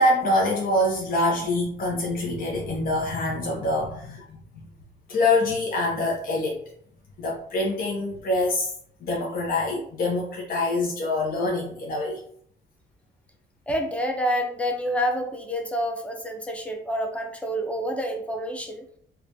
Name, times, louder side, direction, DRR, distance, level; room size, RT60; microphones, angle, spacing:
voice 1, 0.0-4.6 5.1-6.6 7.2-8.7 9.0-12.2, left 2 dB, 45° left, -3 dB, 0.6 m, -25 dB
voice 2, 13.7-18.8, equal, 5° left, 3 dB, 0.5 m, -28 dB
2.9 x 2.2 x 2.5 m, 0.62 s
cardioid pair, 90°, 20 cm